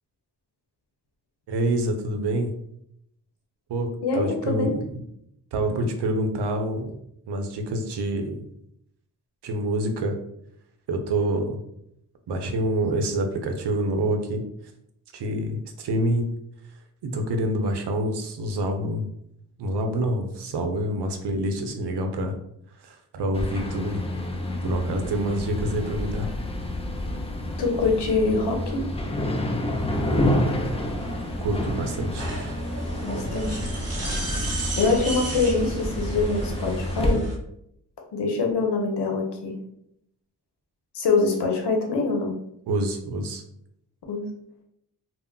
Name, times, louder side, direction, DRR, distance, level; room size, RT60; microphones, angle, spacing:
voice 1, 1.5-2.5 3.7-5.0 5.5-7.0 7.3-8.4 9.4-10.2 10.9-11.6 12.3-14.4 15.1-16.2 17.0-19.1 19.6-22.3 22.8-24.0 24.6-26.3 31.4-32.3 42.7-43.4, right 1 dB, 75° right, 5 dB, 0.6 m, -27 dB
voice 2, 4.0-4.8 27.6-28.8 33.0-33.6 34.8-37.2 38.1-39.6 40.9-42.3 44.1-44.3, left 3 dB, 80° left, 1 dB, 0.7 m, -24 dB
sound 1, 23.3-37.1, left 1 dB, 15° left, 0.4 m, -28 dB
sound 2, 29.7-37.3, right 2 dB, 35° right, 0.8 m, -36 dB
2.2 x 2.0 x 3.7 m, 0.74 s
cardioid pair, 65°, 40 cm